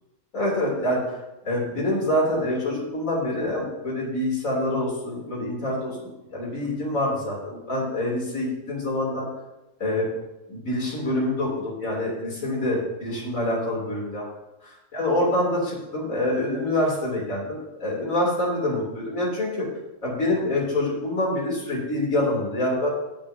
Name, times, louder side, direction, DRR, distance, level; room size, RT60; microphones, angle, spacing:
voice 1, 0.3-1.0 1.4-9.2 9.8-10.1 10.5-14.2 14.9-15.6 15.9-19.7 20.0-22.9, left 1 dB, 85° left, -4 dB, 3.5 m, -26 dB
19.0 x 6.9 x 2.7 m, 0.95 s
omnidirectional pair, 1.4 m